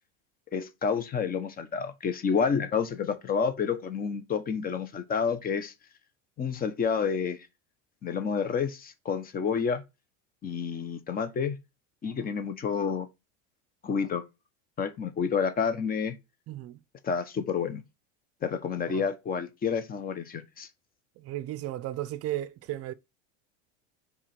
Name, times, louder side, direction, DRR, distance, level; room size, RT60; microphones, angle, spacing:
voice 1, 0.5-5.7 6.4-7.5 8.0-9.8 10.4-11.6 12.0-13.1 13.8-14.3 14.8-16.2 17.0-17.8 18.4-20.7, left 6 dB, 25° left, 1.0 m, -29 dB
voice 2, 16.5-16.8 18.9-19.1 21.2-22.9, right 14 dB, 40° right, 0.7 m, -35 dB
4.9 x 4.1 x 5.8 m
supercardioid pair, 135°, 36 cm